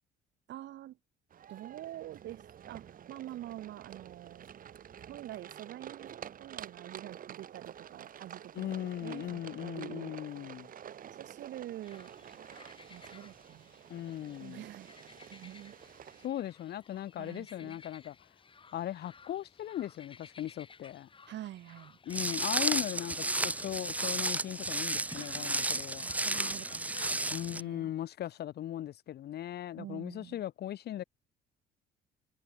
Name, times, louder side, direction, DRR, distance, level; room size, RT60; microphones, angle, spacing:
voice 1, 0.5-1.0 1.5-4.5 5.0-10.1 11.0-12.1 12.9-13.7 14.4-15.0 15.3-15.7 17.2-17.8 21.3-22.0 25.1-27.9 29.8-30.4, right 13 dB, 60° right, 4.4 m, -46 dB
sound 1, 1.3-16.3, right 9 dB, 45° right, 3.7 m, -49 dB
voice 2, 8.5-10.7 13.9-14.6 16.2-18.2 18.7-21.1 22.1-26.1 27.3-31.0, left 12 dB, 55° left, 2.2 m, -38 dB
sound 2, 11.8-27.7, left 5 dB, 25° left, 5.5 m, -54 dB
Walk footsteps, 22.1-27.6, right 2 dB, 5° right, 0.6 m, -33 dB
cardioid pair, 145°, 21 cm